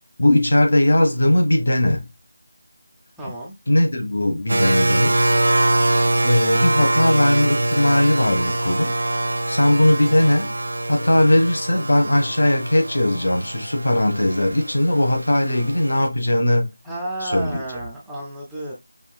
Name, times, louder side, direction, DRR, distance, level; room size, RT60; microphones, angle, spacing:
voice 1, 0.2-2.1 3.7-5.3 6.2-8.9 9.5-10.5 10.9-16.7 17.2-17.6, left 1 dB, 65° left, 1.4 m, -19 dB
voice 2, 3.2-3.5 16.8-18.7, right 1 dB, ahead, 0.4 m, -31 dB
sound 1, 4.5-16.1, right 1 dB, 75° right, 0.3 m, -23 dB
5.3 x 2.6 x 2.3 m
figure-of-eight pair, 175°, 0 cm